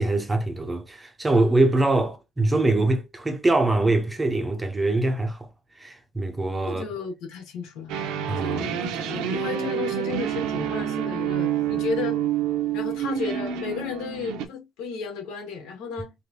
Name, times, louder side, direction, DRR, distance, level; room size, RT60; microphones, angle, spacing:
voice 1, 0.0-5.5 5.8-6.8 8.3-8.7, right 2 dB, 10° right, 0.7 m, -23 dB
voice 2, 6.7-7.9 8.4-12.2 12.7-16.1, left 5 dB, 90° left, 1.8 m, -33 dB
sound 1, 7.9-14.5, right 9 dB, 80° right, 0.8 m, -28 dB
4.3 x 3.5 x 2.8 m
cardioid pair, 170°, 0 cm